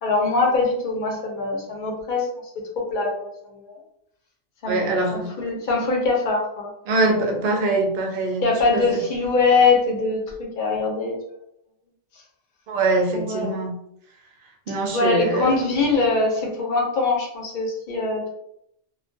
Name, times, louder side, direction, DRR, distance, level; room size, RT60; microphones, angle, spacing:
voice 1, 0.0-2.3 2.5-3.8 4.6-6.7 7.0-7.3 8.4-11.2 13.1-13.5 14.9-18.3, left 3 dB, 50° left, -1 dB, 0.8 m, -23 dB
voice 2, 4.7-5.3 6.9-8.5 8.7-9.0 12.7-13.7 14.7-15.5, right 2 dB, 55° right, 1 dB, 0.7 m, -23 dB
2.3 x 2.2 x 2.6 m, 0.75 s
omnidirectional pair, 1.2 m